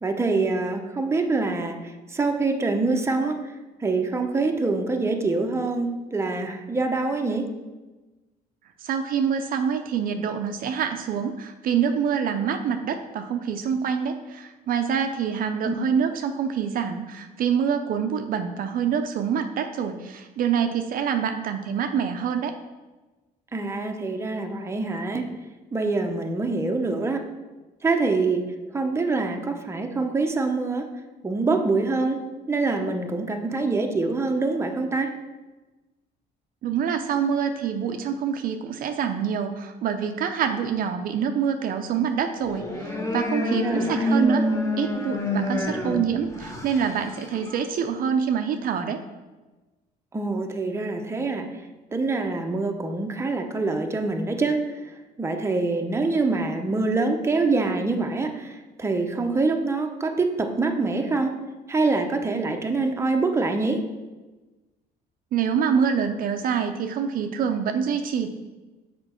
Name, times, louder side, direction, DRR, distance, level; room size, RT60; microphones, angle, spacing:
voice 1, 0.0-3.5 3.8-7.5 15.6-15.7 23.5-25.3 25.7-27.3 27.8-28.5 28.7-30.9 31.2-35.1 43.6-44.3 50.1-51.5 51.9-54.8 55.2-61.4 61.7-63.9, right 3 dB, 15° right, 4 dB, 0.7 m, -25 dB
voice 2, 8.8-22.6 36.6-44.5 44.8-49.0 65.3-68.3, right 7 dB, 55° right, 7 dB, 0.5 m, -26 dB
sound 1, 42.4-47.6, left 1 dB, 20° left, 1.2 m, -27 dB
6.7 x 5.1 x 4.3 m, 1.2 s
cardioid pair, 110°, 17 cm